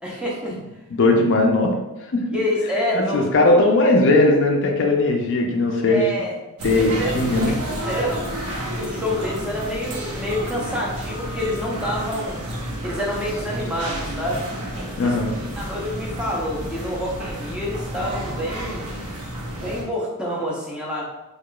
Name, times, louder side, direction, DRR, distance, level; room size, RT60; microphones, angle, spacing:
voice 1, 0.0-0.6 2.3-3.6 5.9-6.3 6.7-7.1 7.4-7.6 7.8-8.3 8.7-12.4 12.8-14.5 15.0-15.1 15.6-18.9 19.5-21.0, equal, 5° right, -4 dB, 0.7 m, -27 dB
voice 2, 0.9-1.7 2.1-2.2 2.9-6.1 6.6-7.6 15.0-15.4, left 2 dB, 55° left, 2 dB, 0.5 m, -18 dB
sound 1, 6.6-19.8, right 1 dB, 80° right, 0.9 m, -31 dB
4.7 x 2.4 x 2.3 m, 0.99 s
head